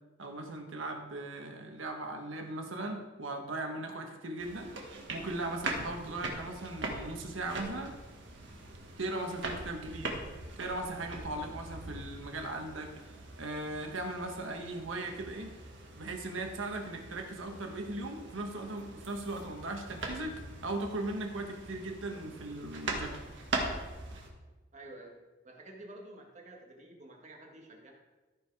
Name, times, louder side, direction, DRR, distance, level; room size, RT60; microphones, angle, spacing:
voice 1, 0.2-4.7 5.1-7.9 9.0-10.2 10.6-12.9 13.4-15.5 15.9-23.2, right 2 dB, 85° right, 3 dB, 1.4 m, -38 dB
sound 1, 4.4-24.3, right 2 dB, 65° right, 1.6 m, -42 dB
voice 2, 24.7-25.2 25.4-27.9, right 1 dB, 35° right, 0 dB, 1.7 m, -50 dB
14.0 x 4.9 x 4.8 m, 1.2 s
head